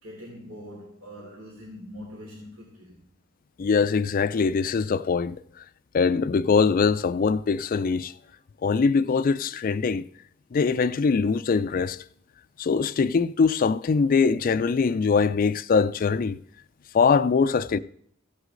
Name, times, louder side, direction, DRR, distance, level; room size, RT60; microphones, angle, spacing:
voice 1, 0.0-3.0, equal, 90° right, 3.3 m, -43 dB
voice 2, 3.6-5.4 5.9-8.1 8.6-10.0 10.5-12.0 12.6-16.4 16.9-17.8, left 5 dB, 45° left, 0.4 m, -22 dB
14.5 x 8.1 x 3.8 m
head